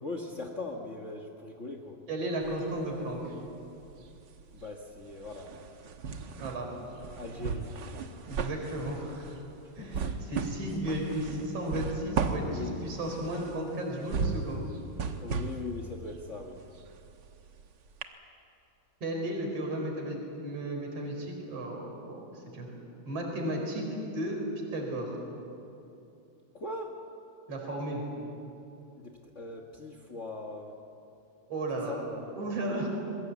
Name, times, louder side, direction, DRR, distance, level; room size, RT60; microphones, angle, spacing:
voice 1, 0.0-2.0 4.5-5.5 7.2-7.7 9.8-10.2 12.4-12.9 15.2-16.6 26.5-27.0 29.0-30.7 31.9-32.3, left 2 dB, 70° left, 3 dB, 0.7 m, -40 dB
voice 2, 2.1-3.3 6.4-6.7 8.3-9.3 9.8-14.7 19.0-22.7 23.1-23.9 24.1-24.4 24.7-25.2 27.5-28.1 31.5-32.1 32.4-32.9, right 1 dB, 45° right, 1 dB, 5.3 m, -34 dB
sound 1, 2.4-3.5 3.8-17.6 18.0-18.1, right 4 dB, 85° right, 0.9 m, -36 dB
26.5 x 21.5 x 8.3 m, 2.7 s
omnidirectional pair, 3.9 m